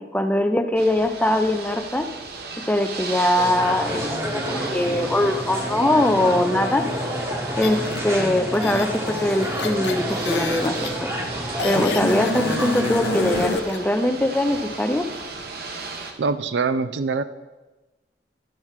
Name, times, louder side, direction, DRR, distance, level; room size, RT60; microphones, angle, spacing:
voice 1, 0.0-2.1 2.7-6.8 7.6-10.7 11.0-11.1 11.6-15.0, left 1 dB, 10° left, 6 dB, 0.5 m, -22 dB
Ocean / Boat Water vehicle, 0.8-16.1, right 3 dB, 60° right, 1.0 m, -35 dB
sound 1, 3.4-13.5, equal, 15° right, 1.0 m, -29 dB
sound 2, 7.6-8.0 8.5-10.9 11.6-13.8, left 3 dB, 75° left, 0.7 m, -29 dB
voice 2, 16.2-17.2, right 4 dB, 75° right, 13 dB, 0.5 m, -23 dB
11.0 x 4.6 x 5.7 m, 1.1 s
head